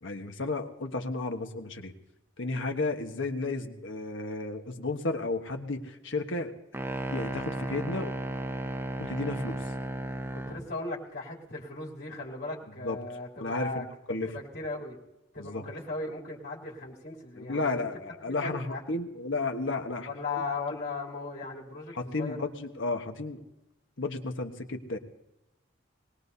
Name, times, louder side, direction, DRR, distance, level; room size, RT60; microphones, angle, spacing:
voice 1, 0.0-1.9 2.4-6.5 7.1-8.1 9.0-9.6 12.8-13.0 13.4-14.3 15.4-15.6 17.4-20.1 21.9-23.4 24.0-25.0, left 3 dB, 75° left, 5 dB, 1.3 m, -33 dB
sound 1, 6.7-10.7, right 1 dB, 10° right, 0.6 m, -34 dB
voice 2, 10.3-13.8 14.2-15.0 15.3-17.9 18.2-18.8 20.0-22.4, left 3 dB, 55° left, -4 dB, 3.0 m, -37 dB
21.0 x 18.5 x 2.7 m, 0.96 s
head